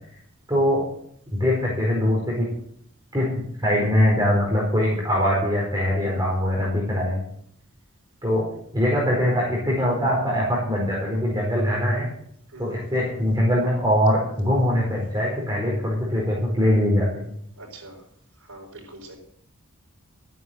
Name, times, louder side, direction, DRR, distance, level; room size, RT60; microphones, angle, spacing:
voice 1, 0.5-0.8 1.4-2.5 3.1-3.3 3.6-7.2 8.2-8.4 8.7-12.1 12.6-17.3, equal, 20° right, -4 dB, 4.4 m, -22 dB
voice 2, 17.6-18.0 18.5-19.2, right 2 dB, 90° right, -7 dB, 4.7 m, -42 dB
14.0 x 9.5 x 7.9 m, 0.67 s
head